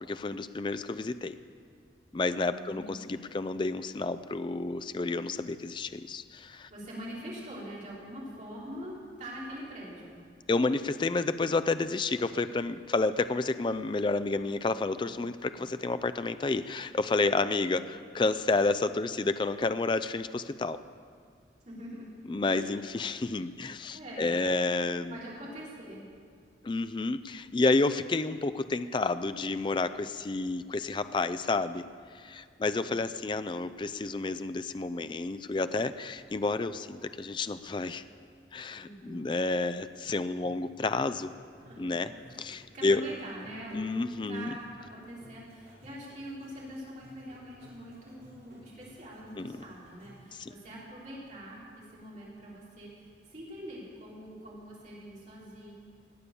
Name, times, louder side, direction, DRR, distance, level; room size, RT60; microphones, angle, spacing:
voice 1, 0.1-1.4 2.1-6.7 10.5-20.8 22.3-25.2 26.6-31.9 32.1-38.0 38.5-41.3 41.8-42.1 42.4-43.0 43.7-44.5 49.4-49.6 50.3-50.5, left 3 dB, 25° left, 12 dB, 0.3 m, -30 dB
voice 2, 2.4-3.1 6.7-10.2 15.5-15.7 21.6-22.1 22.5-22.8 23.9-24.4 25.1-26.0 32.8-33.0 38.8-39.3 40.8-40.9 41.6-55.7, equal, 40° right, -7 dB, 4.4 m, -44 dB
sound 1, 40.4-50.3, right 1 dB, 55° right, 5.0 m, -57 dB
19.0 x 8.5 x 7.0 m, 2.1 s
head